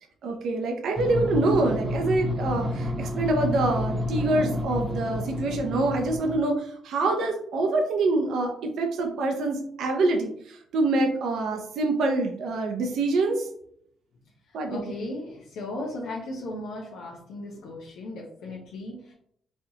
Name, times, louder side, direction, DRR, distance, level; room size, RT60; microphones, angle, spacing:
voice 1, 0.2-13.5 14.5-14.8, right 2 dB, 75° right, 3 dB, 0.6 m, -25 dB
sound 1, 1.0-6.4, left 1 dB, 25° right, 0.8 m, -30 dB
voice 2, 14.5-19.1, left 2 dB, 85° left, -3 dB, 0.7 m, -36 dB
4.3 x 2.3 x 2.8 m, 0.65 s
cardioid pair, 90°, 0 cm